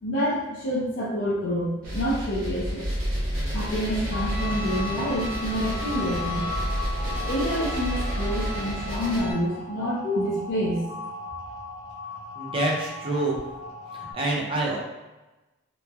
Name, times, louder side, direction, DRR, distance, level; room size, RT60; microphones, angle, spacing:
voice 1, 0.0-2.8 3.5-6.6 7.3-10.9, equal, 55° left, -8 dB, 0.5 m, -27 dB
sound 1, 1.8-9.2, equal, 45° right, 0.9 m, -30 dB
sound 2, 4.1-14.1, left 4 dB, 70° left, 1.2 m, -37 dB
Bowed string instrument, 4.3-9.3, right 3 dB, 85° right, 0.6 m, -39 dB
voice 2, 12.3-13.4 13.9-14.8, right 2 dB, 25° right, -4 dB, 0.5 m, -27 dB
3.1 x 2.0 x 2.3 m, 1.1 s
head